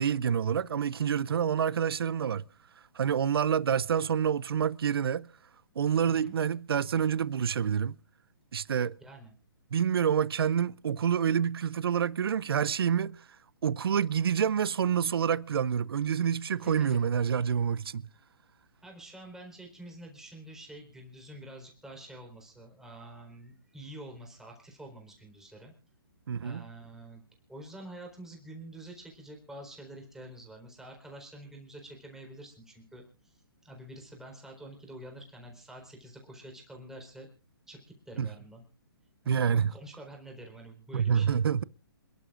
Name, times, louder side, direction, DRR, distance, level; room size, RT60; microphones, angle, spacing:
voice 1, 0.0-2.4 2.9-5.3 5.8-7.9 8.5-9.0 9.7-13.2 13.6-18.1 26.3-26.6 38.2-38.3 39.3-39.7 40.9-41.6, right 8 dB, 70° right, 0.6 m, -27 dB
voice 2, 9.0-9.3 16.6-17.0 18.8-25.7 26.4-27.2 27.5-37.3 37.7-37.8 38.1-38.6 39.2-41.4, right 1 dB, 5° right, 4.2 m, -47 dB
28.0 x 11.5 x 2.5 m
hypercardioid pair, 145°, 13 cm